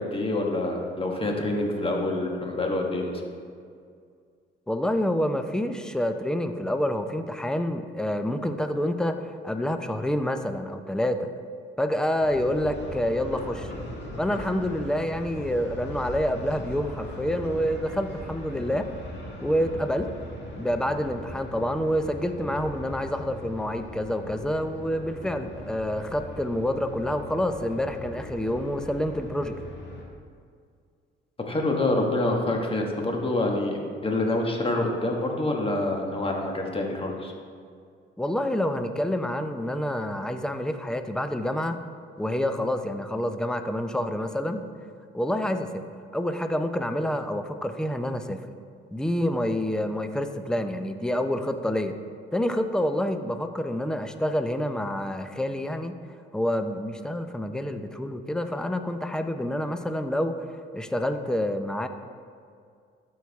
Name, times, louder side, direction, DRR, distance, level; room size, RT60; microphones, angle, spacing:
voice 1, 0.0-3.2 31.5-37.3, left 2 dB, 25° left, 1 dB, 1.4 m, -26 dB
voice 2, 4.7-11.3 11.8-13.7 14.2-18.9 19.4-20.1 20.6-29.6 38.2-41.8 42.2-44.6 45.1-45.8 46.1-48.4 48.9-51.9 52.3-56.0 56.3-60.4 60.7-61.9, equal, 5° left, 7 dB, 0.5 m, -27 dB
sound 1, 12.2-30.0, left 1 dB, 65° left, 1.8 m, -39 dB
12.5 x 4.7 x 3.5 m, 2.2 s
cardioid pair, 90°, 20 cm